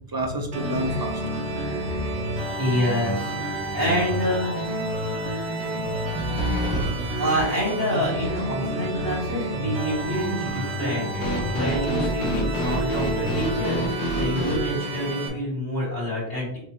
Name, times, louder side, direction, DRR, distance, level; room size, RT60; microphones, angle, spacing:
voice 1, 0.1-1.2 5.7-7.1, right 1 dB, 30° right, 2 dB, 0.4 m, -30 dB
sound 1, 0.5-15.3, right 1 dB, 80° right, 1.2 m, -29 dB
voice 2, 2.6-4.6 7.2-16.6, equal, 30° left, -10 dB, 1.8 m, -27 dB
sound 2, 3.3-3.7 4.1-4.2 6.4-6.9 11.2-14.6, equal, 80° left, 1.1 m, -27 dB
4.3 x 3.0 x 3.1 m, 0.74 s
omnidirectional pair, 1.1 m